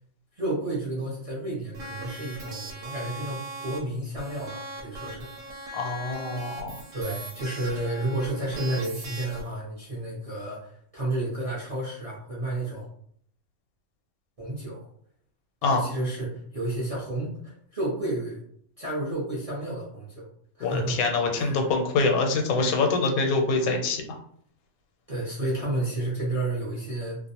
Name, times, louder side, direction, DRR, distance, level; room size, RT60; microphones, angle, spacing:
voice 1, 0.3-5.5 6.9-12.9 14.4-14.9 15.6-18.4 18.8-20.3 20.6-21.0 21.3-21.7 25.1-27.2, right 1 dB, 40° right, -7 dB, 0.5 m, -31 dB
sound 1, 1.7-3.8 4.2-9.5, right 2 dB, 70° right, 0.9 m, -39 dB
voice 2, 5.7-6.8 15.6-15.9 20.6-24.0, left 3 dB, 80° left, 3 dB, 1.0 m, -25 dB
2.4 x 2.1 x 2.7 m, 0.64 s
omnidirectional pair, 1.5 m